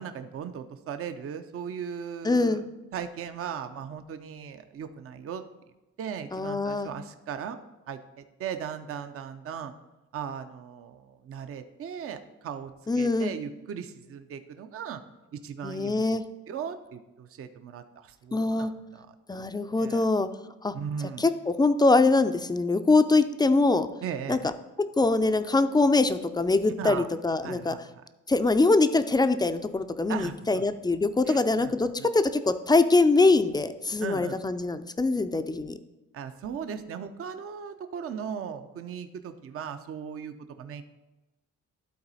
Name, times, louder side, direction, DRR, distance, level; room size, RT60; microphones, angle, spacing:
voice 1, 0.0-2.6 2.9-5.4 6.0-7.6 7.9-9.7 10.1-12.7 13.0-15.0 15.3-16.0 16.5-19.1 19.4-19.5 19.8-20.0 20.7-21.3 24.0-24.5 26.8-27.1 27.4-28.0 30.1-30.7 31.3-32.1 34.0-34.4 36.1-40.8, right 7 dB, 50° right, 9 dB, 0.6 m, -37 dB
voice 2, 2.2-2.6 6.3-6.9 12.9-13.3 15.6-16.2 18.3-18.7 19.3-20.3 20.6-20.7 21.2-23.9 24.3-24.5 25.0-27.7 28.3-35.8, left 3 dB, 15° left, 10 dB, 0.4 m, -23 dB
12.0 x 4.1 x 4.1 m, 1.1 s
cardioid pair, 90°, 30 cm